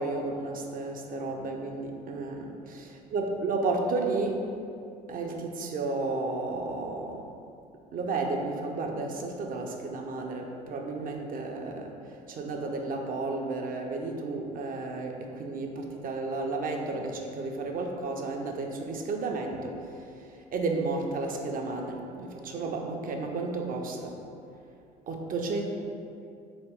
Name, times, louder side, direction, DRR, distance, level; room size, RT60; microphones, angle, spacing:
voice 1, 0.0-2.8 3.1-4.4 5.1-7.3 7.9-12.0 12.3-19.9 20.5-24.2 25.1-25.6, right 3 dB, 45° right, 2 dB, 0.6 m, -32 dB
4.1 x 3.0 x 3.5 m, 2.6 s
hypercardioid pair, 60°, 20 cm